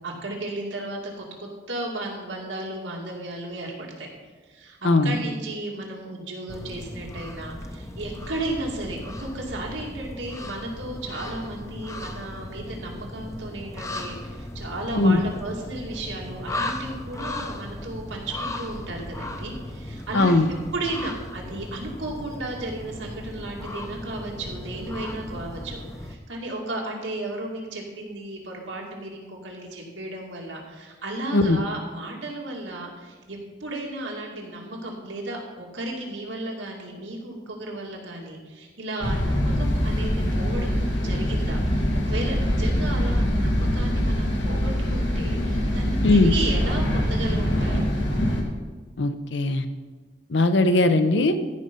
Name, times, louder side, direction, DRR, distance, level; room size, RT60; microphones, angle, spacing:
voice 1, 0.0-4.1 4.5-20.3 20.7-47.9, right 2 dB, 90° right, -1 dB, 2.4 m, -34 dB
voice 2, 4.8-5.2 14.9-15.2 20.1-20.5 31.3-31.6 46.0-46.3 49.0-49.7 50.3-51.4, left 2 dB, 75° left, 10 dB, 0.8 m, -19 dB
sound 1, 6.5-26.2, left 1 dB, 15° left, 0.6 m, -36 dB
sound 2, 39.0-48.4, equal, 90° left, 2.1 m, -24 dB
15.0 x 5.5 x 5.3 m, 1.3 s
head